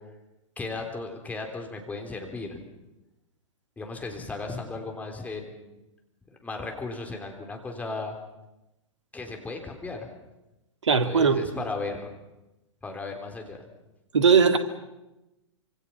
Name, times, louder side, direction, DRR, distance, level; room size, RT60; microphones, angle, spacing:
voice 1, 0.6-2.6 3.8-5.8 6.3-8.2 9.1-10.1 11.0-12.1 12.8-13.6, left 3 dB, 10° left, 3 dB, 3.6 m, -35 dB
voice 2, 10.8-11.5 14.1-14.6, right 6 dB, 65° right, 8 dB, 2.3 m, -19 dB
26.5 x 26.0 x 5.9 m, 0.97 s
figure-of-eight pair, 110°, 16 cm